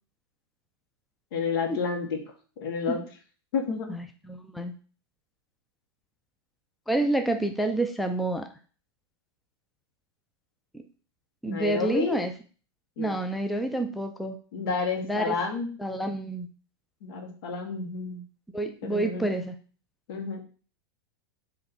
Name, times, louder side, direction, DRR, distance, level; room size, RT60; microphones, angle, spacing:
voice 1, 1.3-2.2 2.6-3.0 3.5-3.9 11.4-12.2 13.0-13.2 14.5-15.7 17.0-18.2 18.8-19.4 20.1-20.4, left 5 dB, 70° left, 3 dB, 1.8 m, -30 dB
voice 2, 3.9-4.7 6.9-8.5 10.7-10.8 11.4-12.3 13.0-14.4 15.0-15.3 15.8-16.5 18.5-19.5, right 2 dB, ahead, 6 dB, 0.4 m, -28 dB
7.1 x 3.2 x 4.2 m, 0.39 s
supercardioid pair, 135°, 13 cm